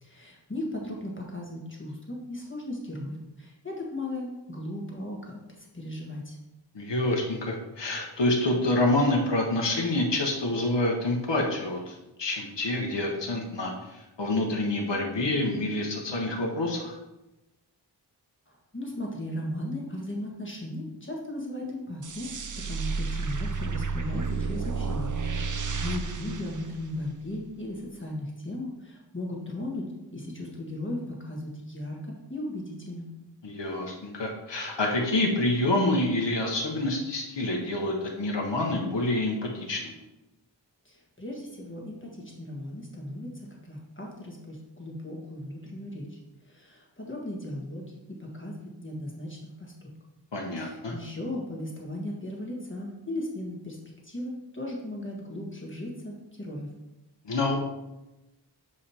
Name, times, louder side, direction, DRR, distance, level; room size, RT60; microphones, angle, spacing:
voice 1, 0.0-6.4 18.5-22.3 22.6-25.1 25.4-29.9 30.1-33.1 40.8-49.9 50.6-56.7, left 1 dB, 25° left, -2 dB, 1.5 m, -37 dB
voice 2, 6.7-17.0 33.4-40.0 50.3-50.9 57.2-57.6, left 2 dB, 75° left, 0 dB, 1.0 m, -27 dB
sound 1, 22.0-27.4, right 4 dB, 45° right, 0.5 m, -32 dB
7.2 x 4.9 x 2.8 m, 0.98 s
wide cardioid pair, 50°, 43 cm